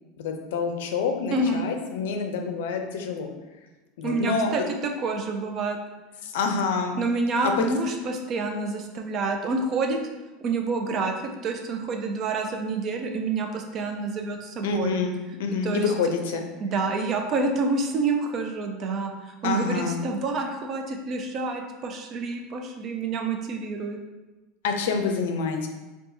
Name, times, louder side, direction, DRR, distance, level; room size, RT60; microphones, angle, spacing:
voice 1, 0.2-3.3 4.0-4.7 6.2-7.0 7.4-7.5 14.6-16.5 19.4-20.0 24.6-25.7, left 4 dB, 85° left, 4 dB, 0.5 m, -27 dB
voice 2, 1.3-1.6 4.0-4.6 5.0-5.8 6.9-10.0 10.4-14.9 15.6-15.9 16.6-24.0, right 3 dB, 40° right, 3 dB, 0.5 m, -28 dB
3.9 x 2.3 x 2.7 m, 1.2 s
supercardioid pair, 135°, 0 cm